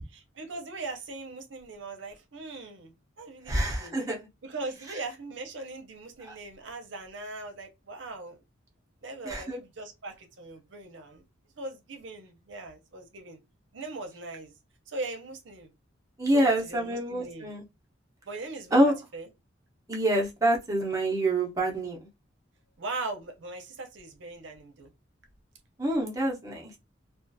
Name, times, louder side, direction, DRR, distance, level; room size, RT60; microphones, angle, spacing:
voice 1, 0.1-4.0 4.4-8.4 9.0-11.2 11.6-13.4 13.7-14.5 14.9-15.7 16.3-17.5 18.2-19.3 22.8-24.9, right 3 dB, 65° right, 0.6 m, -40 dB
voice 2, 3.5-4.2 6.3-6.4 9.2-9.6 16.2-17.6 18.7-18.9 19.9-22.0 25.8-26.6, right 1 dB, 15° right, 0.6 m, -26 dB
2.4 x 2.3 x 2.6 m
head